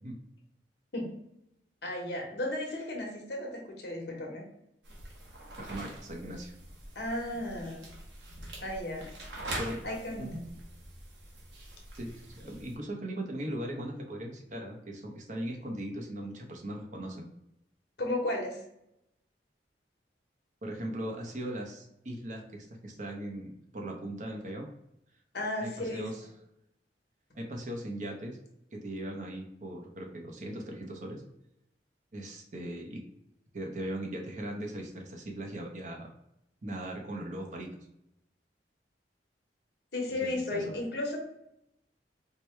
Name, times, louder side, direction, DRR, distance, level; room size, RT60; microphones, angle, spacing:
voice 1, 1.8-4.5 6.9-7.9 8.6-9.1 9.8-10.3 18.0-18.6 25.3-26.1 39.9-41.2, left 1 dB, 70° left, 0 dB, 1.0 m, -34 dB
sound 1, 4.8-12.8, right 1 dB, 85° right, 1.0 m, -44 dB
voice 2, 5.6-6.5 9.6-9.8 10.2-10.4 12.0-17.3 20.6-24.7 25.6-26.2 27.3-28.4 28.7-31.2 32.1-33.0 33.5-36.1 36.6-37.8 40.2-40.6, right 1 dB, 45° right, 1 dB, 0.7 m, -39 dB
4.5 x 2.2 x 3.2 m, 0.81 s
head